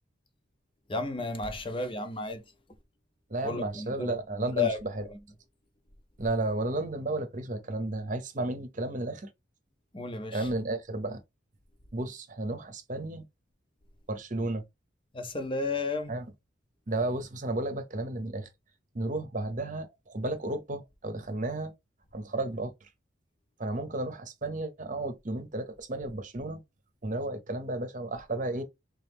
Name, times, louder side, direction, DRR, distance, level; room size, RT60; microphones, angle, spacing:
voice 1, 0.9-2.4 3.4-4.1 4.5-4.8 9.9-10.5 15.1-16.2, left 4 dB, 25° left, 0.7 m, -32 dB
voice 2, 3.3-5.0 6.2-9.3 10.3-11.2 11.9-13.2 14.1-14.6 16.1-16.3 16.9-18.5 18.9-21.7 22.1-22.7 23.6-26.6 27.0-28.6, right 2 dB, 40° right, 0.8 m, -33 dB
3.7 x 3.0 x 3.5 m
head